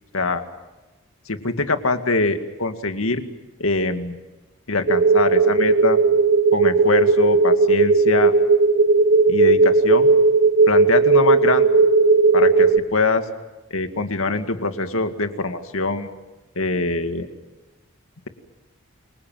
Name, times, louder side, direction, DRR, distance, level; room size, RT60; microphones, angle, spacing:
voice 1, 1.3-3.2 3.6-4.2 4.7-6.0 6.5-8.3 9.3-10.1 10.7-11.7 12.3-13.2 13.7-16.1 16.6-17.3, left 3 dB, 80° left, 7 dB, 2.2 m, -23 dB
sound 1, 4.9-12.8, right 3 dB, 65° right, 1.3 m, -16 dB
28.5 x 23.5 x 7.6 m, 1.1 s
head